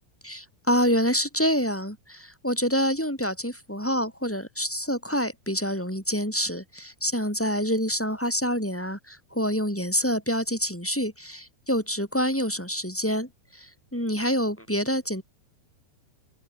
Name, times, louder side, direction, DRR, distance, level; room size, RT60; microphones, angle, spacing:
voice 1, 0.2-15.2, equal, 5° left, 5.2 m, -27 dB
omnidirectional pair, 5.4 m